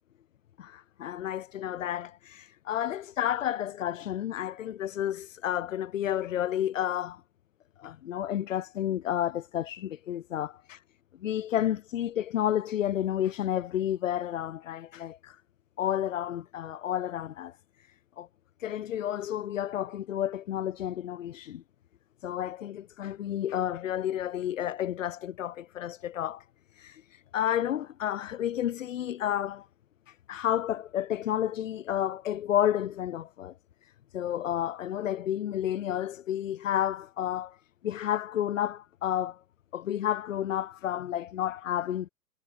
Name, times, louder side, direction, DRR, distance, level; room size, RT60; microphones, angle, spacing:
voice 1, 0.6-7.2 7.8-10.8 11.2-15.4 15.8-17.6 18.2-18.3 18.6-21.6 22.2-26.4 26.7-29.7 30.1-33.5 33.8-37.6 37.8-39.4 39.7-42.1, left 11 dB, 55° left, 0.7 m, -31 dB
figure-of-eight pair, 110°, 46 cm